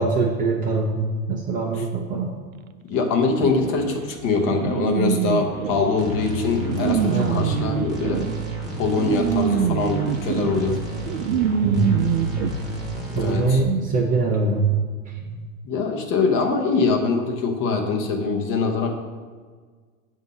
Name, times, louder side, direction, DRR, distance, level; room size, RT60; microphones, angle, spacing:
voice 1, 0.0-2.4 7.1-7.5 11.6-12.3 13.1-14.8, right 3 dB, 20° right, -1 dB, 0.4 m, -23 dB
voice 2, 2.9-8.2 8.8-10.8 13.1-13.6 15.6-18.9, left 4 dB, 35° left, 3 dB, 0.8 m, -23 dB
sound 1, 3.4-12.5, right 9 dB, 85° right, 0.5 m, -25 dB
sound 2, 6.0-13.7, left 1 dB, ahead, 1.0 m, -32 dB
7.9 x 2.7 x 5.3 m, 1.5 s
hypercardioid pair, 135°, 40 cm